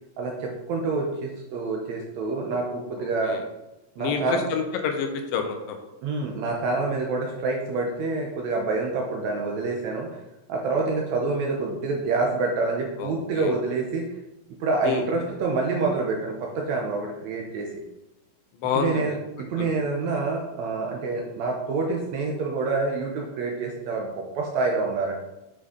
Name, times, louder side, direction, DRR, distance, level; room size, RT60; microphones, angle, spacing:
voice 1, 0.2-3.4 4.0-4.4 6.0-10.1 10.5-14.1 14.6-17.7 18.8-25.1, right 3 dB, 75° right, 1 dB, 1.8 m, -27 dB
voice 2, 3.0-3.4 4.0-5.8 13.0-13.5 14.8-15.0 18.6-19.2, left 6 dB, 85° left, 4 dB, 2.6 m, -28 dB
8.5 x 5.2 x 3.7 m, 0.95 s
omnidirectional pair, 3.9 m